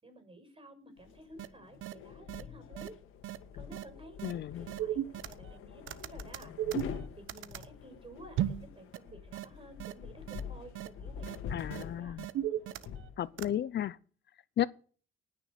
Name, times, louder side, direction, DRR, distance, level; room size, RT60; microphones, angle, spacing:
voice 1, 0.0-3.0 3.5-6.5 6.8-11.3 11.6-12.2, right 1 dB, 25° right, 6.2 m, -53 dB
sound 1, 1.0-13.9, left 7 dB, 85° left, 1.9 m, -46 dB
sound 2, 1.4-1.5 1.8-1.9 2.3-2.4 2.8-2.9 3.2-3.4 3.7-3.8 4.2-4.3 4.7-5.6 5.9-7.7 8.4-8.7 8.9-9.0 9.3-9.4 9.8-9.9 10.3-10.4 10.8-10.9 11.2-11.4 11.7-11.8 12.2-13.1 13.4-13.5, right 12 dB, 80° right, 1.0 m, -35 dB
voice 2, 4.2-4.7 11.5-12.3 13.2-14.0 14.6-14.7, left 11 dB, 60° left, 0.7 m, -33 dB
19.0 x 6.7 x 6.8 m
cardioid pair, 90°, 20 cm